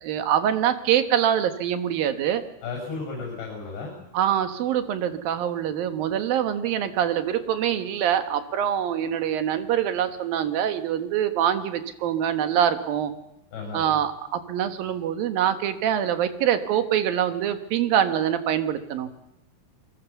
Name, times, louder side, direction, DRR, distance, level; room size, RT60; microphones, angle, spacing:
voice 1, 0.0-2.4 4.1-13.1 13.7-19.1, right 10 dB, 65° right, 9 dB, 2.9 m, -24 dB
voice 2, 2.6-3.9 13.5-13.8, left 4 dB, 90° left, -1 dB, 8.7 m, -34 dB
28.0 x 22.0 x 7.1 m, 0.84 s
omnidirectional pair, 4.9 m